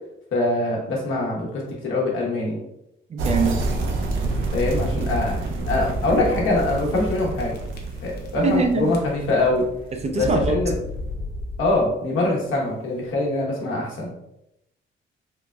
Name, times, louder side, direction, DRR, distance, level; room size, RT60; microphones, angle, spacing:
voice 1, 0.3-2.6 4.5-5.3 5.7-7.6 8.0-9.6 10.1-10.7 11.6-14.1, left 2 dB, 85° left, -3 dB, 1.1 m, -23 dB
voice 2, 3.1-3.6 8.4-8.9 10.0-10.6, right 3 dB, 35° right, 4 dB, 0.4 m, -22 dB
sound 1, 3.2-10.9, right 2 dB, 80° right, 0.5 m, -28 dB
sound 2, 4.3-4.8 5.4-5.5 5.7-5.8 6.7-7.1 7.4-8.6 8.9-9.4 10.1-12.0, left 1 dB, 55° left, 0.6 m, -32 dB
3.6 x 2.5 x 2.2 m, 0.82 s
cardioid pair, 90°, 20 cm